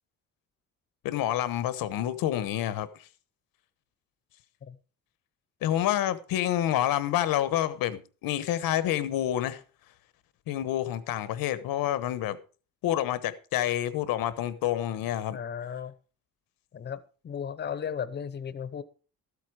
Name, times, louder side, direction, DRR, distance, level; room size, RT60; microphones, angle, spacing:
voice 1, 1.0-3.1 5.6-9.6 10.5-12.4 12.8-15.4, left 12 dB, 85° left, 1.2 m, -28 dB
voice 2, 15.3-15.9 16.7-18.8, left 7 dB, 30° left, 0.8 m, -35 dB
13.5 x 8.4 x 4.8 m
cardioid pair, 175°, 34 cm